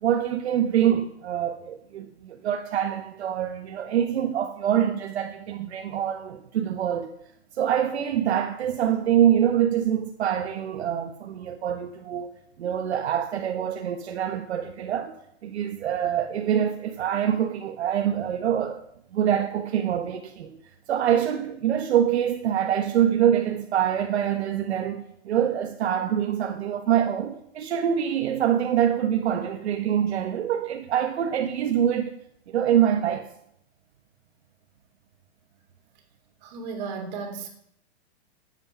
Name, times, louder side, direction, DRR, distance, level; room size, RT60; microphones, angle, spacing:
voice 1, 0.0-7.1 7.6-12.3 12.6-15.1 15.4-18.8 19.1-20.6 20.9-32.1 32.5-33.3, right 10 dB, 75° right, 1.4 m, -25 dB
voice 2, 36.4-37.5, right 5 dB, 40° right, 3.5 m, -34 dB
14.5 x 9.0 x 6.0 m
supercardioid pair, 170°, 33 cm